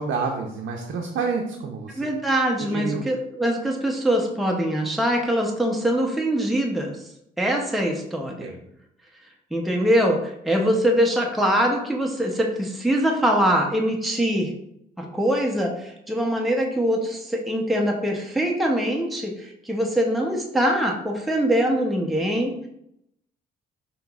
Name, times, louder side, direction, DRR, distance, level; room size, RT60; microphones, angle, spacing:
voice 1, 0.0-2.1 2.6-3.1 8.4-8.6, right 5 dB, 65° right, 1 dB, 0.5 m, -28 dB
voice 2, 2.0-7.0 7.4-8.5 9.5-14.5 15.0-22.5, equal, ahead, 0 dB, 0.6 m, -23 dB
5.4 x 2.9 x 2.3 m, 0.78 s
cardioid pair, 90°, 20 cm